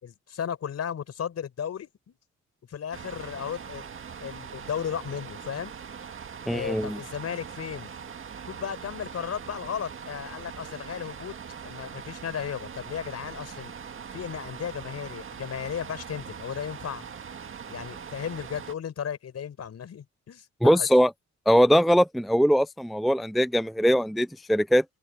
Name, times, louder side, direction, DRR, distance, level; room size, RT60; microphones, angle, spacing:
voice 1, 0.0-2.2 2.7-3.9 4.2-5.7 6.5-7.9 8.5-11.3 11.6-13.7 14.1-17.1 17.7-20.9, left 8 dB, 55° left, 5.2 m, -35 dB
sound 1, 2.9-18.7, right 7 dB, 45° right, 1.9 m, -41 dB
voice 2, 6.5-7.0 20.6-21.1 21.5-24.8, equal, ahead, 0.5 m, -21 dB
open air
cardioid pair, 90°, 30 cm